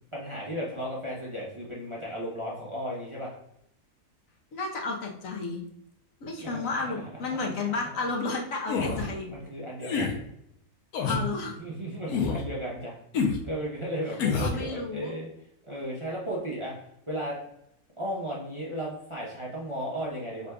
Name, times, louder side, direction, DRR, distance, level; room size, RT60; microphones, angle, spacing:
voice 1, 0.1-3.3 6.4-7.0 7.3-7.8 8.9-10.2 11.6-13.0 13.4-15.3 15.7-16.8 17.1-17.3 18.0-20.5, equal, 25° right, -5 dB, 0.7 m, -35 dB
voice 2, 4.5-5.6 6.2-9.3 11.0-11.6 14.2-15.1, left 3 dB, 70° left, 0 dB, 1.2 m, -32 dB
sound 1, 8.7-9.0 9.8-10.1 10.9-11.2 12.1-12.4 13.1-13.4 14.2-14.6, left 5 dB, 90° left, 1.2 m, -27 dB
4.9 x 3.7 x 2.2 m, 0.75 s
omnidirectional pair, 1.5 m